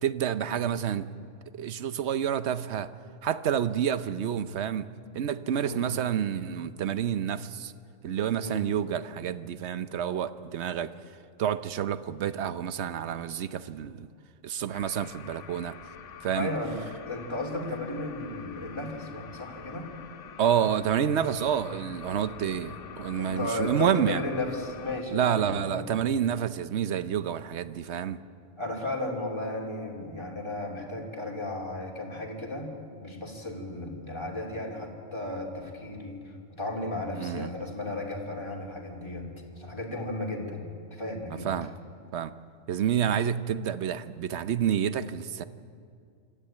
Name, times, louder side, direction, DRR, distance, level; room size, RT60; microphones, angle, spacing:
voice 1, 0.0-1.1 1.5-2.9 3.2-4.9 5.1-7.7 8.0-10.9 11.4-14.1 14.4-15.8 16.2-16.5 20.4-24.2 25.1-28.2 37.1-37.5 41.4-41.7 42.1-42.3 42.7-45.4, right 9 dB, 60° right, 13 dB, 1.0 m, -28 dB
sound 1, 14.7-25.0, left 8 dB, 65° left, 1.2 m, -46 dB
voice 2, 16.3-16.8 17.1-19.9 23.2-25.9 28.6-32.7 33.0-39.3 39.6-40.6 40.9-41.5, left 2 dB, 20° left, -1 dB, 2.8 m, -34 dB
24.5 x 14.0 x 9.0 m, 2.3 s
omnidirectional pair, 1.4 m